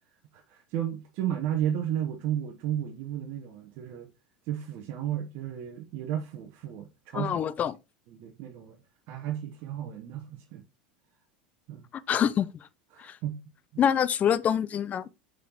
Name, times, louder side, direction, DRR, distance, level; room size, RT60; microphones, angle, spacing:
voice 1, 0.3-4.1 4.5-7.4 8.1-8.8 9.1-10.6 11.7-11.9 12.9-13.8, right 10 dB, 55° right, 0.9 m, -33 dB
voice 2, 7.1-7.7 11.9-12.5 13.0-13.2 13.8-15.1, left 8 dB, 35° left, 0.5 m, -26 dB
6.5 x 5.2 x 2.9 m
hypercardioid pair, 90°, 5 cm